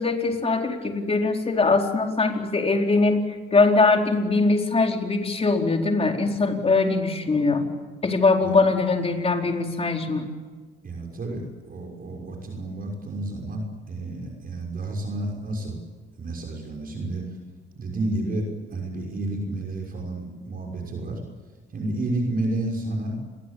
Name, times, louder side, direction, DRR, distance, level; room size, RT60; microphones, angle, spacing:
voice 1, 0.0-3.2 3.5-7.6 8.0-10.3, left 3 dB, 30° left, 3 dB, 4.4 m, -22 dB
voice 2, 10.8-15.8 16.2-17.4 17.7-21.2 21.7-23.2, right 2 dB, 45° right, 1 dB, 6.2 m, -30 dB
28.5 x 22.5 x 8.5 m, 1.4 s
cardioid pair, 90°, 20 cm